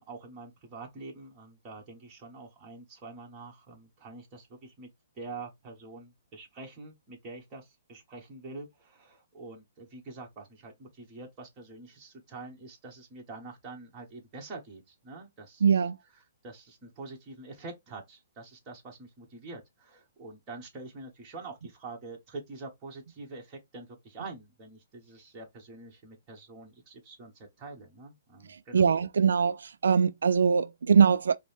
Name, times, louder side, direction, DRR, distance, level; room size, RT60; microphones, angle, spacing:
voice 1, 0.0-4.9 5.2-15.8 16.4-28.9, right 3 dB, 20° right, 1.5 m, -45 dB
voice 2, 15.6-16.0 28.5-31.4, right 6 dB, 85° right, 0.3 m, -23 dB
5.1 x 2.2 x 3.3 m
hypercardioid pair, 165°, 0 cm